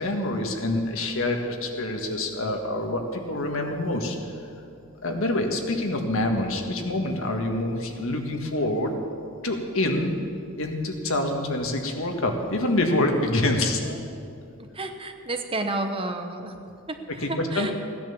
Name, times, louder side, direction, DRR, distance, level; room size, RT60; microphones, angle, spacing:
voice 1, 0.0-4.2 5.0-8.9 9.4-10.2 10.6-14.0 17.2-17.7, left 1 dB, 65° left, 3 dB, 1.7 m, -26 dB
voice 2, 14.7-16.6 16.9-17.7, right 2 dB, 25° right, 6 dB, 0.9 m, -31 dB
16.0 x 10.5 x 7.1 m, 2.5 s
head